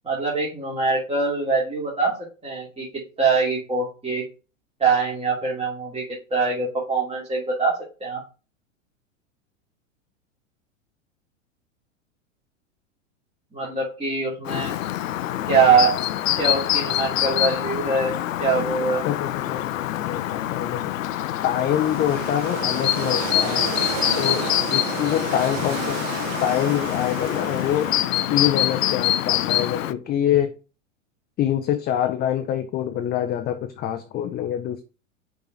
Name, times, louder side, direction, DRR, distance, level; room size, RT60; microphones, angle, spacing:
voice 1, 0.0-2.1 2.4-2.9 3.2-4.2 4.8-6.0 6.3-8.2 13.5-14.7 15.4-15.9 16.3-18.1 18.4-19.0, right 4 dB, 15° right, 2.6 m, -23 dB
Chirp tweet, 14.5-29.9, left 13 dB, 80° left, 0.6 m, -25 dB
voice 2, 19.0-21.0 21.4-23.7 24.2-26.1 26.4-27.9 28.3-30.5 31.4-34.8, left 10 dB, 25° left, 0.6 m, -25 dB
sound 1, 21.3-28.4, right 4 dB, 60° right, 2.9 m, -32 dB
6.8 x 4.7 x 4.0 m
hypercardioid pair, 110°, 39 cm